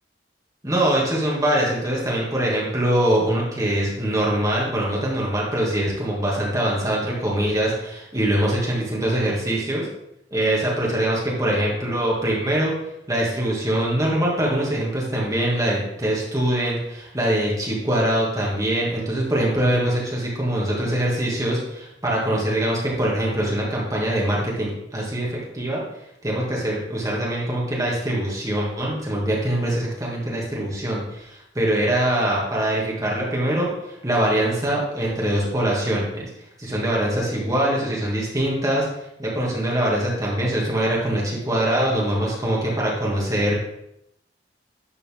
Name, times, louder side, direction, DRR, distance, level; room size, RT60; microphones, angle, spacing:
voice 1, 0.6-9.9 10.3-12.7 13.1-25.8 26.2-36.3 36.6-38.9 39.2-43.6, right 1 dB, 20° right, -4 dB, 2.1 m, -23 dB
11.0 x 4.3 x 3.7 m, 0.80 s
head